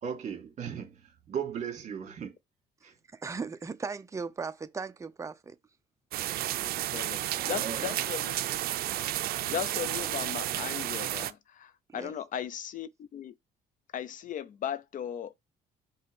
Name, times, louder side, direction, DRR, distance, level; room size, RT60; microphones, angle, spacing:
voice 1, 0.0-2.3 2.8-2.9 7.3-7.9, right 7 dB, 45° right, 2.2 m, -37 dB
voice 2, 3.1-5.6 11.9-12.1, right 5 dB, 20° right, 0.6 m, -37 dB
sound 1, 6.1-11.3, right 14 dB, 65° right, 0.5 m, -32 dB
voice 3, 6.9-8.4 9.4-13.3 13.9-15.3, left 9 dB, 50° left, 0.7 m, -37 dB
5.5 x 3.2 x 5.4 m
cardioid pair, 110°, 17 cm